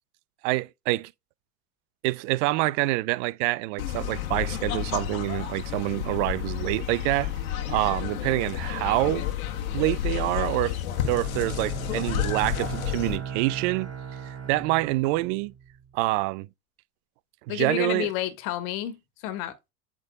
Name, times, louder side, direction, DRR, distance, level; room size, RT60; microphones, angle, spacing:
voice 1, 0.4-1.1 2.0-7.3 7.7-9.3 9.7-10.8 11.1-15.5 15.9-16.5 17.5-18.1, right 19 dB, 55° right, 0.5 m, -26 dB
sound 1, 3.8-13.2, left 11 dB, 75° left, 1.5 m, -31 dB
Bowed string instrument, 10.9-15.9, right 7 dB, 35° right, 3.8 m, -37 dB
voice 2, 17.5-19.7, left 12 dB, 55° left, 1.7 m, -31 dB
8.6 x 3.6 x 3.6 m
hypercardioid pair, 80°, 43 cm